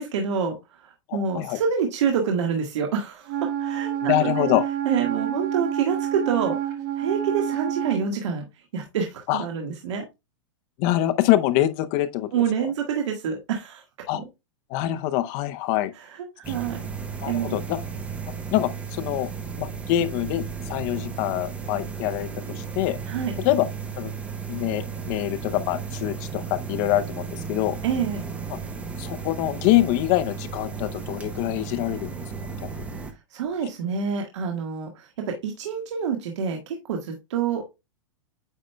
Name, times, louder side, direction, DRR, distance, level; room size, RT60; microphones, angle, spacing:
voice 1, 0.0-4.5 4.8-10.1 12.3-13.8 14.1-14.3 15.9-16.9 17.3-17.5 23.0-23.3 27.8-28.2 32.8-33.0 33.3-37.7, right 6 dB, 65° right, 1.6 m, -27 dB
voice 2, 1.1-1.6 4.0-4.6 9.3-9.4 10.8-12.3 14.1-14.2 14.7-15.9 16.5-16.6 17.2-17.8 18.5-19.3 19.6-22.3 22.6-23.0 23.4-23.7 24.0-24.1 24.5-27.8 29.0-32.1, left 14 dB, 35° left, 0.6 m, -24 dB
Wind instrument woodwind instrument, 3.3-8.1, right 10 dB, 40° right, 1.2 m, -28 dB
sound 1, 16.4-33.1, right 5 dB, 10° right, 0.7 m, -34 dB
8.9 x 5.1 x 2.2 m
supercardioid pair, 165°, 16 cm